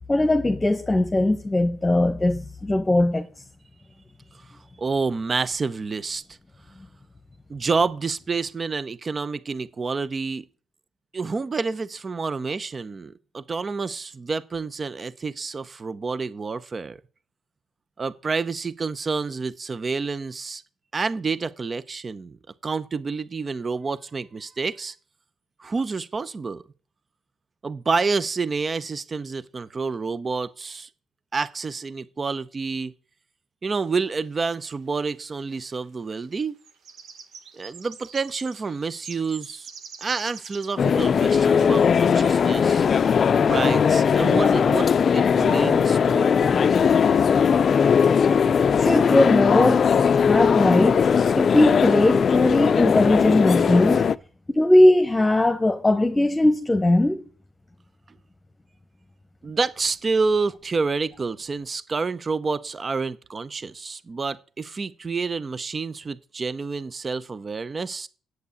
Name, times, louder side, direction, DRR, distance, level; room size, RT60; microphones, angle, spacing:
voice 1, 0.1-3.3 48.8-51.1 51.3-54.1 54.5-57.2, left 1 dB, 15° left, 1.2 m, -19 dB
voice 2, 4.8-6.2 7.5-10.4 11.1-17.0 18.0-20.6 20.9-22.4 22.6-24.9 25.6-26.6 27.6-30.9 31.3-32.9 33.6-36.5 37.5-39.7 40.0-42.9 43.4-46.7 59.4-68.1, right 4 dB, 35° right, 0.7 m, -28 dB
sound 1, 34.7-35.4 36.2-40.9 41.8-41.9 42.4-42.5 42.9-43.2 43.6-43.7 44.0-44.2, right 6 dB, 75° right, 1.7 m, -44 dB
sound 2, 40.8-54.2, left 6 dB, 50° left, 0.4 m, -19 dB
8.2 x 8.0 x 8.4 m
cardioid pair, 90°, 0 cm